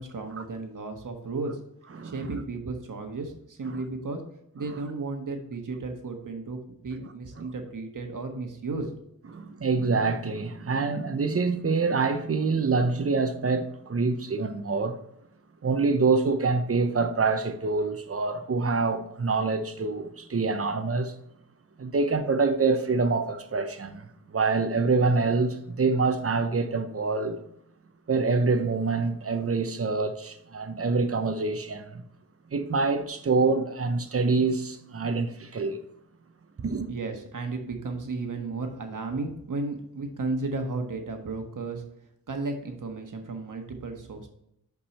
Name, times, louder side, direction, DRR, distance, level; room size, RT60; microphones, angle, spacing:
voice 1, 0.0-1.6 2.0-4.2 4.5-8.9 36.9-41.8 42.3-44.3, right 3 dB, 55° right, 1.4 m, -34 dB
voice 2, 1.9-2.3 3.7-3.8 7.4-7.5 9.3-15.0 15.6-21.1 21.8-27.4 28.1-32.0 32.5-35.8 36.6-36.9, right 4 dB, 40° right, 0.8 m, -26 dB
5.9 x 5.3 x 4.2 m
cardioid pair, 70°, 37 cm